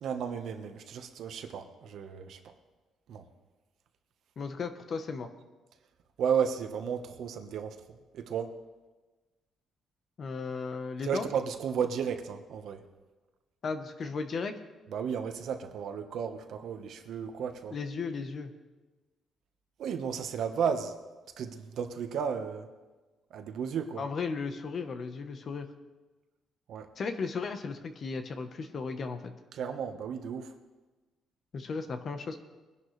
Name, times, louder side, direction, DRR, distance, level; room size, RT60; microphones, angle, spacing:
voice 1, 0.0-2.4 3.1-3.2 6.2-7.8 8.1-8.5 11.0-12.8 14.9-17.7 19.8-20.9 21.4-22.7 23.3-24.0 26.7-26.9 29.5-30.5, right 7 dB, 65° right, 7 dB, 1.2 m, -33 dB
voice 2, 4.4-5.3 10.2-11.3 13.6-14.5 17.7-18.5 24.0-25.7 27.0-29.3 31.5-32.4, left 4 dB, 40° left, 8 dB, 1.0 m, -35 dB
22.0 x 11.0 x 3.3 m, 1.2 s
cardioid pair, 145°, 0 cm